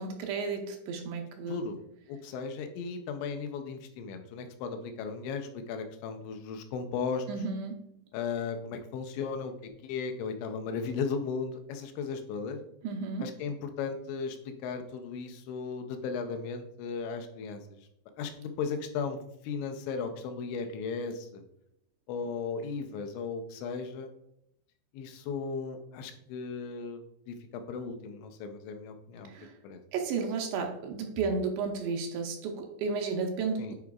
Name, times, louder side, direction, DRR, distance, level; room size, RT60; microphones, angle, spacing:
voice 1, 0.0-1.6 7.3-7.8 12.8-13.3 29.3-29.6 29.9-33.7, right 4 dB, 80° right, 3 dB, 2.9 m, -33 dB
voice 2, 1.5-1.8 2.1-7.3 8.1-12.6 13.2-17.8 18.2-19.2 19.4-21.4 22.1-24.1 24.9-27.0 27.3-29.3 29.6-29.8 33.6-33.7, left 5 dB, 85° left, 6 dB, 3.0 m, -36 dB
9.1 x 4.7 x 2.3 m, 0.76 s
omnidirectional pair, 5.1 m